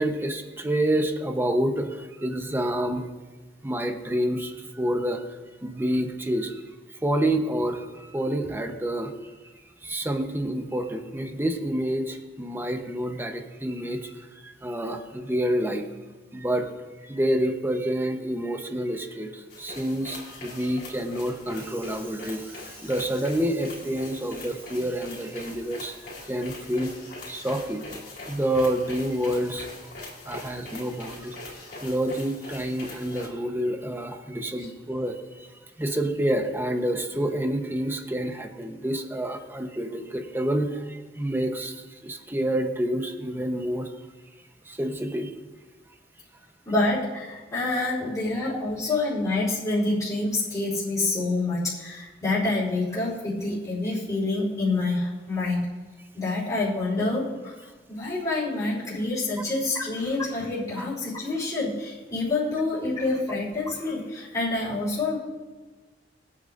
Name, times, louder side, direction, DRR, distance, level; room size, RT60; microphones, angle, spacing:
voice 1, 0.0-3.1 3.6-5.3 5.6-6.6 7.0-9.3 9.8-15.9 16.3-16.7 17.0-26.0 26.3-26.9 27.3-27.8 28.3-29.9 30.3-31.4 31.8-35.5 35.8-43.9 44.7-45.3 60.8-60.9, right 1 dB, 15° right, 5 dB, 0.9 m, -28 dB
sound 1, 19.5-33.3, left 2 dB, 60° left, 3.9 m, -42 dB
voice 2, 46.7-55.7 56.1-57.6 57.9-65.2, left 2 dB, 20° left, -11 dB, 3.8 m, -27 dB
21.5 x 8.7 x 2.6 m, 1.3 s
head